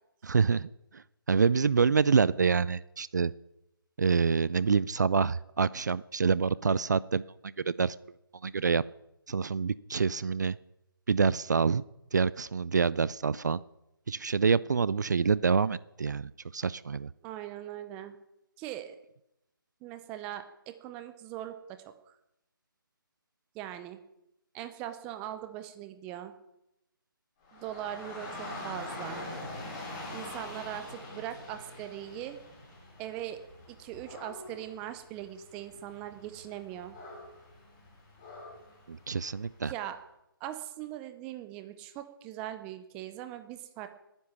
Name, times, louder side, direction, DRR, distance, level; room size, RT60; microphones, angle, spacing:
voice 1, 0.2-3.3 4.0-7.2 7.6-8.0 8.4-8.8 9.3-10.6 11.1-11.8 12.1-13.6 14.1-17.1 38.9-39.7, right 5 dB, 50° right, 20 dB, 0.5 m, -27 dB
voice 2, 17.2-18.2 18.6-19.0 19.8-21.9 23.5-24.0 24.5-26.3 27.5-29.3 30.1-32.4 33.0-33.4 33.7-37.0 39.7-40.0 40.4-43.9, right 12 dB, 10° right, 10 dB, 0.6 m, -40 dB
Dog / Rain, 27.4-39.6, left 2 dB, 20° left, 4.8 m, -44 dB
19.5 x 9.9 x 7.2 m, 0.85 s
figure-of-eight pair, 165°, 12 cm